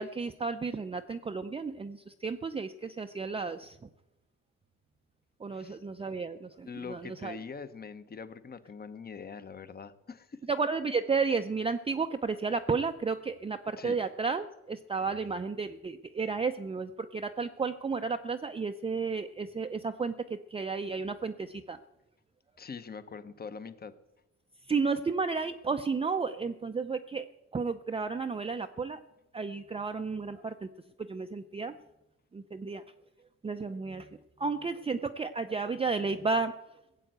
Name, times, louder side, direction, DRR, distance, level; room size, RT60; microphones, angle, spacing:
voice 1, 0.0-3.8 5.4-7.4 10.5-21.8 24.7-27.3 27.5-29.0 29.3-30.7 31.0-31.7 32.3-32.8 33.4-34.1 34.4-36.5, right 4 dB, 20° right, 6 dB, 0.5 m, -32 dB
voice 2, 5.5-5.8 6.6-10.4 13.8-14.0 22.6-23.9, left 5 dB, 30° left, 13 dB, 0.9 m, -43 dB
16.5 x 7.7 x 7.9 m, 0.97 s
cardioid pair, 90°, 30 cm